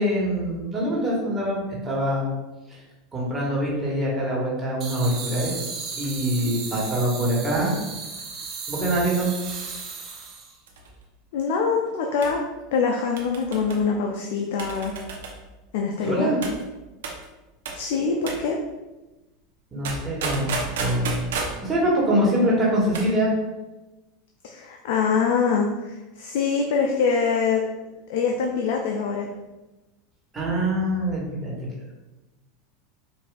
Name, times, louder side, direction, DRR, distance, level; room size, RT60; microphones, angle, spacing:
voice 1, 0.0-2.3 2.7-2.8 3.1-5.5 6.0-7.7 8.7-9.3 16.0-16.4 19.7-21.3 21.6-23.3 30.3-31.5, right 1 dB, 20° right, -4 dB, 1.4 m, -24 dB
sound 1, 4.8-10.6, right 5 dB, 45° right, 0.9 m, -35 dB
sound 2, 5.2-8.6 9.4-9.9 10.1-10.2 10.7-11.0 12.2-12.4 13.2-13.8 14.6-15.4 16.4-16.6 17.0-17.2 17.6-17.9 18.3-18.5 19.8-21.6 22.8-23.1 23.4-23.5, right 3 dB, 80° right, 0.7 m, -33 dB
voice 2, 11.3-12.4 12.7-14.9 15.7-16.3 17.7-18.6 24.4-27.6 28.1-29.3, left 5 dB, 70° left, 1 dB, 0.4 m, -24 dB
4.9 x 2.6 x 2.4 m, 1.1 s
hypercardioid pair, 95°, 0 cm